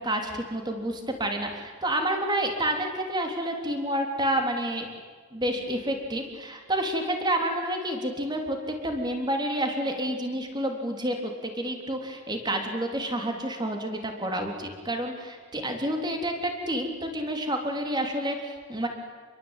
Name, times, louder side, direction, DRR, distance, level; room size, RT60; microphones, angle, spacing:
voice 1, 0.0-4.9 5.3-18.9, right 1 dB, 20° right, 3 dB, 3.6 m, -29 dB
28.0 x 22.5 x 9.2 m, 1.5 s
head